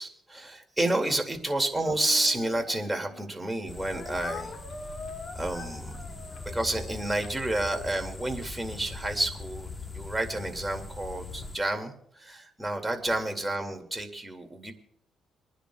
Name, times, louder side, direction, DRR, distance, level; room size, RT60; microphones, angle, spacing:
voice 1, 0.0-4.6 5.3-5.9 6.5-14.7, right 1 dB, 10° right, 4 dB, 2.2 m, -30 dB
Speech, 1.7-3.3 3.9-8.0, left 4 dB, 60° left, 2.2 m, -43 dB
sound 1, 3.7-11.6, left 3 dB, 20° left, 0.9 m, -41 dB
29.5 x 10.0 x 2.3 m, 0.66 s
cardioid pair, 90°, 0 cm